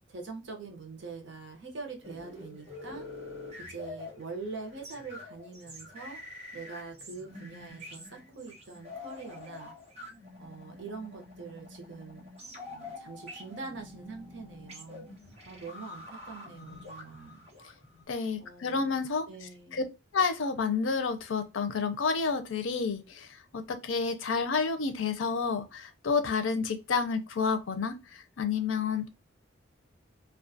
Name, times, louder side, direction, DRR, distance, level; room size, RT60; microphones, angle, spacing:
voice 1, 0.1-3.1 3.6-6.2 6.5-9.7 10.4-12.3 12.7-15.1 15.4-17.5 18.4-19.8, right 4 dB, 65° right, 0.7 m, -44 dB
sound 1, 2.0-18.0, left 2 dB, 35° right, 1.0 m, -46 dB
voice 2, 18.1-19.3 19.7-19.8 20.1-29.1, left 5 dB, 90° left, 0.5 m, -30 dB
2.3 x 2.3 x 2.6 m
head